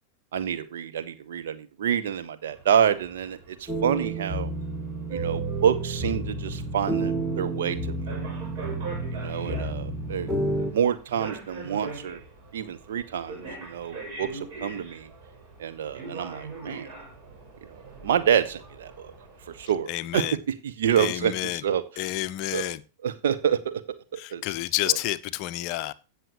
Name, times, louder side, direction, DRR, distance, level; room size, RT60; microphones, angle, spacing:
voice 1, 0.3-4.5 5.1-8.0 9.1-12.2 12.5-15.1 15.6-16.9 18.0-19.1 19.6-20.2 20.8-21.8 22.5-22.8 23.0-23.8 24.1-24.4 24.9-25.0, right 8 dB, 60° right, 1.2 m, -27 dB
sound 1, 2.5-19.8, right 4 dB, 45° right, 6.2 m, -42 dB
sound 2, 3.7-10.7, right 2 dB, 10° right, 2.6 m, -30 dB
voice 2, 19.9-20.4 21.0-21.6 22.0-22.8 24.2-25.9, left 16 dB, 45° left, 0.6 m, -29 dB
16.5 x 6.3 x 3.0 m
figure-of-eight pair, 90°, 0 cm